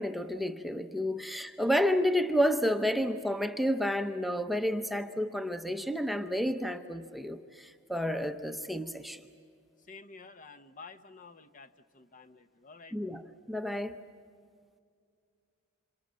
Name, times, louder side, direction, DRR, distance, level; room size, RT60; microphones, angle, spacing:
voice 1, 0.0-9.2 12.9-13.2 13.5-14.0, equal, ahead, 7 dB, 0.7 m, -30 dB
voice 2, 9.9-13.0, left 4 dB, 35° left, 10 dB, 0.8 m, -51 dB
27.5 x 27.0 x 7.5 m, 2.2 s
head